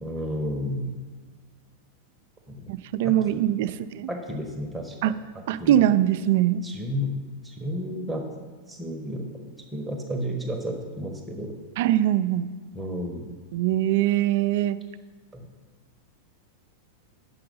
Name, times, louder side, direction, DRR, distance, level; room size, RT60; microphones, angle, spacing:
voice 1, 0.0-0.9 2.5-2.7 3.0-3.4 4.1-5.1 5.6-5.8 6.6-7.1 7.4-8.2 8.7-9.3 9.7-11.5 12.7-13.3 15.3-15.4, equal, 10° right, 1 dB, 1.1 m, -32 dB
voice 2, 2.7-4.1 5.0-5.1 5.5-6.6 11.8-12.5 13.5-14.8, right 12 dB, 65° right, 13 dB, 0.4 m, -22 dB
8.7 x 5.7 x 5.4 m, 1.5 s
hypercardioid pair, 120°, 0 cm